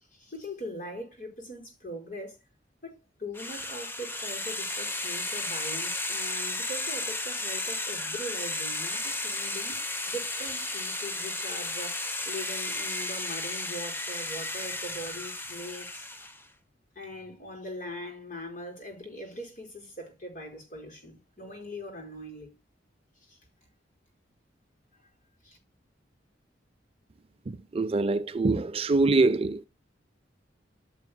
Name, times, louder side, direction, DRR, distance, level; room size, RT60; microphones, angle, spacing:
voice 1, 0.1-2.4 2.8-16.0 16.9-22.5 23.2-23.4 24.9-25.1 25.4-25.6, equal, 45° left, 4.9 m, -41 dB
sound 1, 3.3-16.4, left 2 dB, 10° left, 0.8 m, -33 dB
voice 2, 27.7-29.6, right 3 dB, 30° right, 0.5 m, -24 dB
15.0 x 6.1 x 2.2 m
head